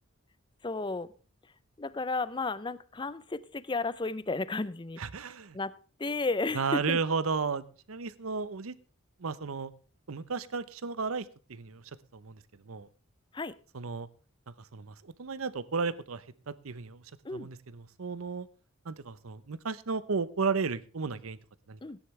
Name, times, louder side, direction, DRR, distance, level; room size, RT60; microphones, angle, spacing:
voice 1, 0.6-1.1 1.8-5.0 5.5-5.7 6.0-7.0 13.3-13.5 17.2-17.5 21.8-22.0, left 3 dB, 20° left, 17 dB, 0.5 m, -33 dB
voice 2, 5.0-5.6 6.5-8.7 9.2-9.7 10.1-11.8 12.1-12.9 13.7-14.1 14.6-17.0 17.3-18.5 18.8-21.4 21.7-21.8, right 5 dB, 75° right, 16 dB, 0.8 m, -34 dB
16.5 x 10.0 x 3.2 m, 0.38 s
head